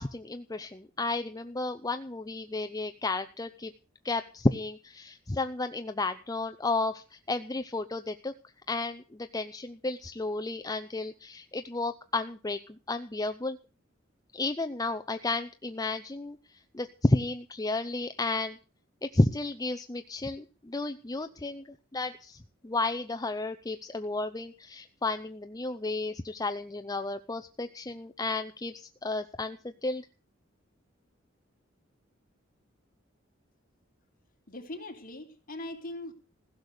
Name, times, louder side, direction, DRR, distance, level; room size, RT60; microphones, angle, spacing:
voice 1, 0.0-3.7 4.0-8.3 8.7-13.6 14.3-16.4 16.7-18.6 19.0-21.6 21.9-30.1, left 2 dB, 20° left, 9 dB, 0.6 m, -32 dB
voice 2, 34.5-36.1, left 1 dB, 45° left, 4 dB, 3.0 m, -40 dB
16.0 x 6.6 x 9.6 m, 0.37 s
head